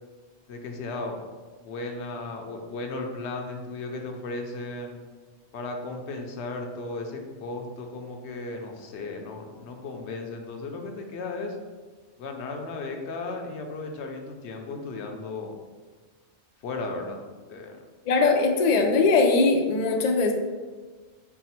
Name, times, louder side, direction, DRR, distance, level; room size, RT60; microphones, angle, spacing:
voice 1, 0.5-1.2 1.6-5.0 5.5-11.6 12.2-15.5 16.6-17.2 17.5-17.8, left 3 dB, 75° left, 3 dB, 0.9 m, -35 dB
voice 2, 18.1-20.3, left 3 dB, 60° left, 2 dB, 0.4 m, -21 dB
4.5 x 2.0 x 4.2 m, 1.4 s
omnidirectional pair, 1.2 m